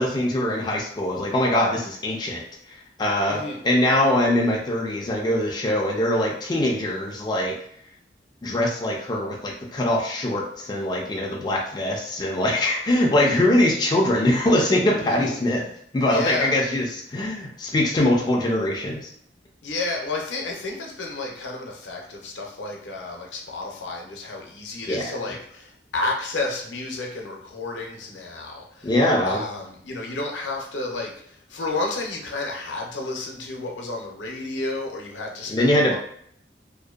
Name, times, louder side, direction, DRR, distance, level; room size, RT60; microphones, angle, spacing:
voice 1, 0.0-2.4 2.7-7.6 8.4-15.6 15.9-19.1 24.9-25.1 28.8-29.4 35.5-36.0, left 1 dB, 25° left, -1 dB, 0.3 m, -22 dB
voice 2, 3.3-3.6 15.0-15.4 16.1-16.6 19.6-28.9 29.3-36.0, left 2 dB, 80° left, 0 dB, 0.6 m, -31 dB
2.5 x 2.1 x 2.3 m, 0.65 s
head